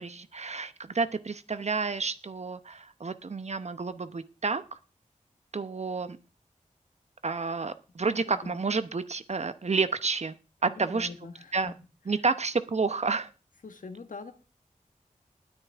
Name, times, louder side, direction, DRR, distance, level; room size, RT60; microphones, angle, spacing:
voice 1, 0.0-4.6 5.5-6.2 7.2-10.3 10.6-11.1 11.5-11.7 12.1-13.3, right 4 dB, 55° right, 12 dB, 0.9 m, -30 dB
voice 2, 8.2-8.6 10.6-11.6 13.6-14.3, left 4 dB, 75° left, 8 dB, 1.6 m, -43 dB
19.5 x 9.2 x 3.6 m, 0.34 s
wide cardioid pair, 85°, 14 cm